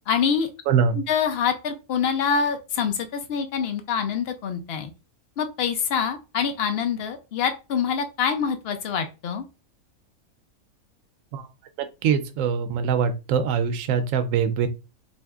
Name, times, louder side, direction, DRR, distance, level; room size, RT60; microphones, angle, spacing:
voice 1, 0.1-0.5 0.9-4.9 5.4-9.4, left 7 dB, 70° left, 0.6 m, -25 dB
voice 2, 0.7-1.0 11.3-11.5 12.0-14.7, right 7 dB, 70° right, 0.9 m, -23 dB
5.3 x 2.5 x 2.3 m
omnidirectional pair, 1.6 m